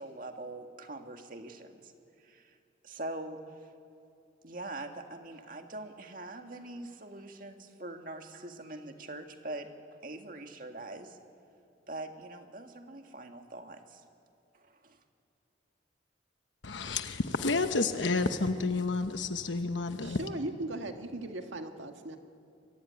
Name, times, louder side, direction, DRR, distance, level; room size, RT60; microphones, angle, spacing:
voice 1, 0.0-1.9 2.2-2.6 2.8-3.7 4.4-9.7 10.0-11.2 11.9-14.0 14.5-15.0, right 2 dB, 45° right, 2.0 m, -43 dB
voice 2, 16.6-20.2, left 3 dB, 80° left, 1.1 m, -30 dB
voice 3, 20.0-22.2, right 1 dB, 85° right, 1.8 m, -38 dB
26.5 x 23.5 x 9.7 m
head